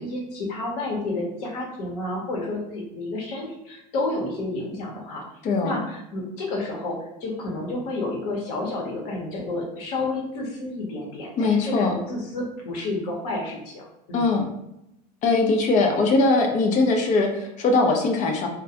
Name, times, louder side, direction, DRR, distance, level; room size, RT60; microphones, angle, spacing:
voice 1, 0.0-5.2 5.6-14.3, left 2 dB, 65° left, -1 dB, 0.9 m, -30 dB
voice 2, 5.4-5.8 11.4-11.9 14.1-14.5 15.2-18.5, left 3 dB, 40° left, 3 dB, 0.5 m, -21 dB
2.3 x 2.2 x 2.7 m, 0.84 s
hypercardioid pair, 95°, 21 cm